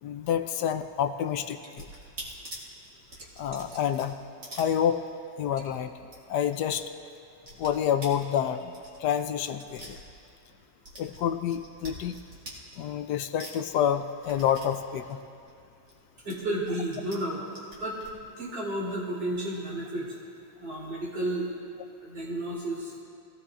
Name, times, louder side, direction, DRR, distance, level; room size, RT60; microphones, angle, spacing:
voice 1, 0.0-1.9 3.4-4.2 4.5-5.0 5.4-5.9 6.3-6.9 7.6-8.7 9.0-10.0 11.0-12.2 12.8-15.2, left 9 dB, 75° left, 9 dB, 1.1 m, -28 dB
Liquid, 1.0-1.7 2.1-4.2 4.7-4.9 5.4-5.8, right 2 dB, 40° right, 2.0 m, -51 dB
sound 1, 1.2-5.4 5.6-5.7 6.0-6.8 7.0-10.5 10.8-13.1 13.4-16.0 16.3-17.2 17.5-18.1, right 1 dB, 55° right, 2.7 m, -45 dB
voice 2, 16.2-18.0 18.4-20.1 20.6-21.5 22.0-22.9, right 1 dB, 90° right, -6 dB, 4.3 m, -32 dB
22.0 x 16.0 x 2.5 m, 2.4 s
omnidirectional pair, 1.9 m